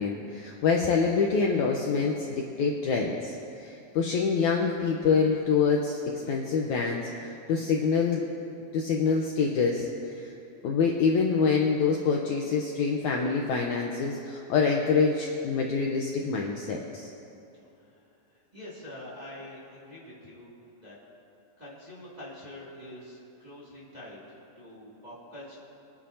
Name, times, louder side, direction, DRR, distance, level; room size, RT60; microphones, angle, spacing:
voice 1, 0.0-8.2 8.7-10.3 10.6-17.1, left 5 dB, 70° left, 0 dB, 1.9 m, -26 dB
voice 2, 18.5-20.5 20.8-21.0 21.6-25.5, left 1 dB, 15° right, -8 dB, 2.1 m, -45 dB
25.0 x 10.0 x 2.8 m, 2.8 s
omnidirectional pair, 4.1 m